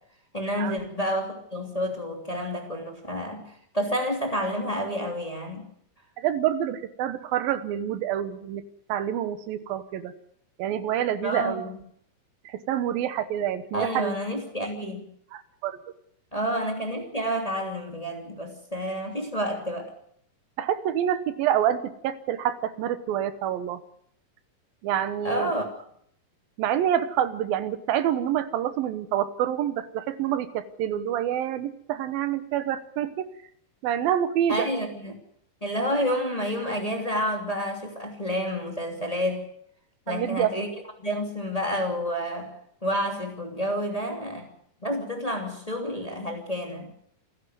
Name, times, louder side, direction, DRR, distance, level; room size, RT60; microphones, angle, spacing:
voice 1, 0.3-5.7 11.2-11.8 13.7-15.1 16.3-19.9 25.2-25.7 34.5-35.2 35.6-39.5 40.1-40.7 41.0-42.5 42.8-44.5 44.8-46.9, equal, 10° left, 2.7 m, -29 dB
voice 2, 6.2-8.6 8.9-10.1 10.6-11.6 12.5-14.1 15.3-15.8 20.6-23.8 24.8-25.5 26.6-33.2 33.8-34.7 40.1-40.5, right 10 dB, 85° right, 2.9 m, -27 dB
27.5 x 11.0 x 9.4 m
omnidirectional pair, 4.0 m